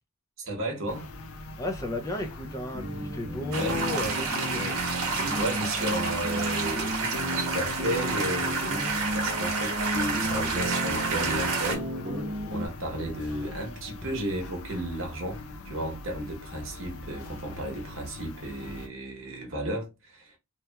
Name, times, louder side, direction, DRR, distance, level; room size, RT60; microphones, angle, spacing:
voice 1, 0.4-1.1 3.5-3.8 4.1-4.3 5.4-8.6 9.1-11.8 12.5-20.3, right 1 dB, 65° right, 0.9 m, -33 dB
sound 1, 0.9-18.9, left 2 dB, 80° left, 0.5 m, -42 dB
voice 2, 1.6-4.8, left 2 dB, 15° left, 0.3 m, -33 dB
sound 2, 2.7-12.7, equal, 35° right, 0.8 m, -34 dB
sound 3, 3.5-11.7, right 4 dB, 90° right, 0.9 m, -30 dB
2.9 x 2.2 x 2.2 m
head